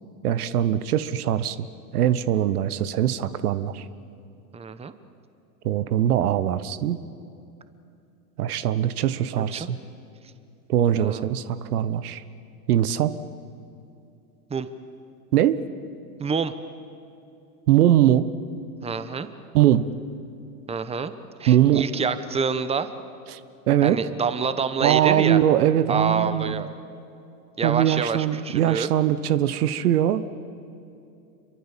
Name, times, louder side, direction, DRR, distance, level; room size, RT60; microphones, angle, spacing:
voice 1, 0.2-1.7 1.9-3.9 5.6-7.0 8.4-9.8 10.7-12.2 12.7-13.1 15.3-15.6 17.7-18.3 19.5-19.9 21.5-21.8 23.3-23.4 23.7-24.0 24.8-26.7 27.6-30.2, right 11 dB, 75° right, 14 dB, 1.2 m, -21 dB
voice 2, 4.5-4.9 9.4-9.7 11.0-11.2 14.5-14.7 16.2-16.5 18.8-19.3 20.7-21.1 21.4-22.9 23.8-25.4 25.9-26.7 27.6-28.9, right 5 dB, 15° right, 12 dB, 1.1 m, -27 dB
27.5 x 23.5 x 7.4 m, 2.6 s
hypercardioid pair, 105°, 45 cm